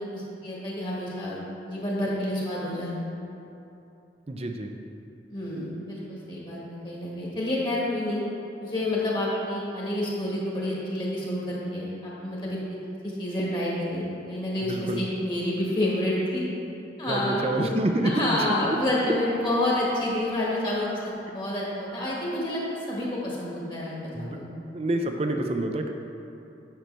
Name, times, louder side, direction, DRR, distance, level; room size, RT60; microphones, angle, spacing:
voice 1, 0.0-1.4 1.7-2.9 5.3-8.2 8.6-12.8 13.0-16.4 17.0-17.7 18.0-24.5, left 1 dB, 25° left, -6 dB, 1.5 m, -29 dB
voice 2, 4.3-4.7 14.7-15.0 17.1-18.4 24.1-24.4 24.7-25.9, right 1 dB, 35° right, 4 dB, 0.5 m, -27 dB
8.9 x 6.6 x 3.4 m, 2.9 s
head